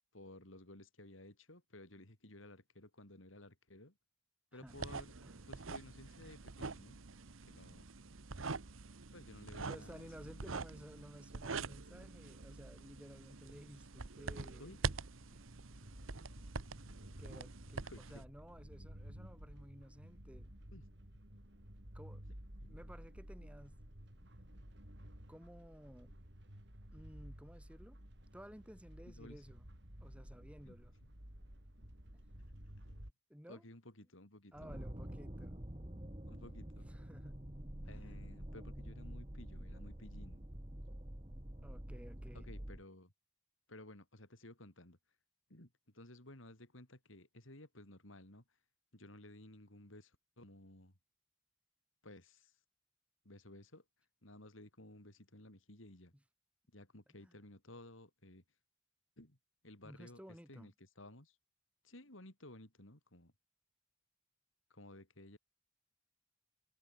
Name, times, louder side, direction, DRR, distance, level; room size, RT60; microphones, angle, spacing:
voice 1, 0.1-4.0 4.5-5.1 5.5-7.0 7.5-7.9 9.1-10.6 11.5-11.7 14.6-14.8 16.1-16.2 17.8-18.2 20.7-20.8 22.6-22.8 29.1-29.5 30.6-30.7 32.4-33.1 33.5-34.7 36.3-36.9 37.9-40.4 42.3-43.1 43.7-45.0 45.5-48.6 48.9-50.9 52.0-52.6 53.2-53.8 54.2-56.1 56.7-58.4 59.2-59.4 59.6-61.4 61.8-63.3 64.7-65.4, left 1 dB, 75° left, 4.7 m, -56 dB
sound 1, 4.7-18.2, right 4 dB, 85° right, 1.1 m, -45 dB
voice 2, 9.7-14.8 17.2-20.5 21.9-22.3 22.7-23.8 25.3-26.1 26.9-28.0 28.3-29.7 30.0-30.9 32.1-32.2 33.3-33.6 34.5-35.6 36.9-37.4 37.8-38.2 41.6-42.5 57.2-57.3 59.8-60.7, equal, 5° right, 4.1 m, -55 dB
sound 2, 15.1-33.1, equal, 60° right, 5.4 m, -54 dB
sound 3, 34.5-42.8, right 1 dB, 30° right, 2.0 m, -47 dB
head